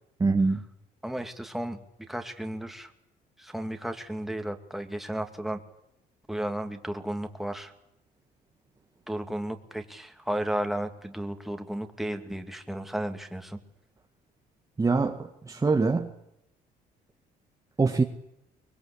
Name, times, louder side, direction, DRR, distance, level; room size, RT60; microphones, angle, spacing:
voice 1, 0.2-0.6 14.8-16.1 17.8-18.0, right 4 dB, 20° right, 1.7 m, -24 dB
voice 2, 1.0-2.9 3.4-5.6 6.3-7.7 9.1-13.6, right 1 dB, ahead, 2.6 m, -34 dB
24.5 x 21.0 x 8.6 m
cardioid pair, 110°, 17 cm